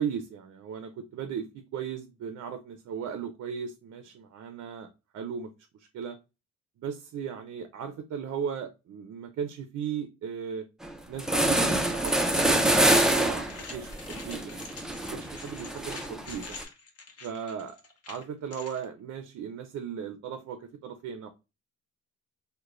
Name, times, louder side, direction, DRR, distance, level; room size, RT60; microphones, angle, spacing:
voice 1, 0.0-4.9 5.1-6.2 6.8-10.7 11.1-14.7 15.1-16.6 17.2-17.8 18.1-21.3, right 7 dB, 60° right, 0.5 m, -37 dB
sound 1, 10.8-10.9 11.2-16.6, right 1 dB, ahead, 0.3 m, -26 dB
sound 2, 12.0-18.8, left 4 dB, 50° left, 0.8 m, -47 dB
2.3 x 2.2 x 3.0 m
cardioid pair, 90°, 30 cm